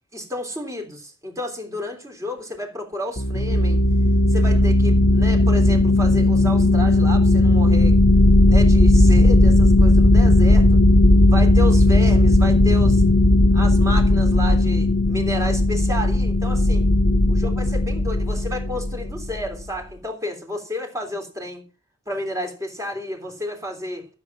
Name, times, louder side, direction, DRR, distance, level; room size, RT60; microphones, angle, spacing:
voice 1, 0.1-3.8 4.3-8.0 8.4-10.7 11.3-13.0 13.5-16.9 17.3-21.6 22.1-24.1, left 1 dB, 15° right, 3.4 m, -31 dB
sound 1, 3.2-19.4, left 1 dB, 55° left, 1.4 m, -16 dB
14.0 x 7.5 x 6.1 m
head